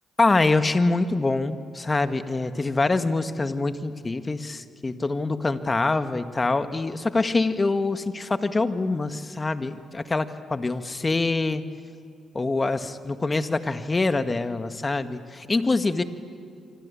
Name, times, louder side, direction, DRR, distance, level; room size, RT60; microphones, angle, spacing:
voice 1, 0.2-11.6 12.3-16.0, left 3 dB, 30° left, 10 dB, 1.7 m, -25 dB
26.0 x 25.0 x 8.6 m, 2.3 s
hypercardioid pair, 45°, 0 cm